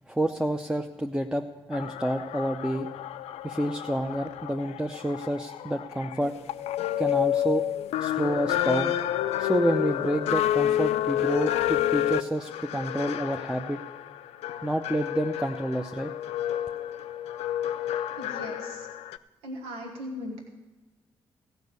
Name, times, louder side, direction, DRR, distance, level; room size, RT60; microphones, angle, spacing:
voice 1, 0.1-2.9 3.4-6.3 7.0-7.6 8.0-8.9 9.4-13.8 14.6-16.1, right 1 dB, 5° right, 3 dB, 0.7 m, -29 dB
sound 1, 1.7-19.2, left 12 dB, 75° left, 0.4 m, -29 dB
voice 2, 18.2-18.9 19.4-20.4, equal, 90° right, 1 dB, 1.5 m, -38 dB
15.0 x 5.4 x 8.2 m, 1.2 s
supercardioid pair, 50°, 11 cm